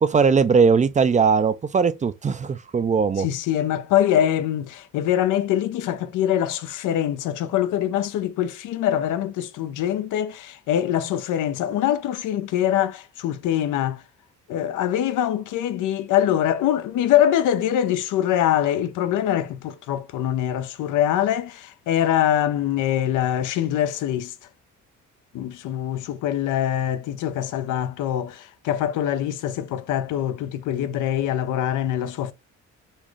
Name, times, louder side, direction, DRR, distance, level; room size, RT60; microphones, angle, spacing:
voice 1, 0.0-3.3, right 5 dB, 25° right, 0.3 m, -19 dB
voice 2, 3.2-14.0 14.5-24.3 25.3-32.3, left 11 dB, 85° left, 0.6 m, -23 dB
4.2 x 2.4 x 3.1 m
cardioid pair, 90°, 30 cm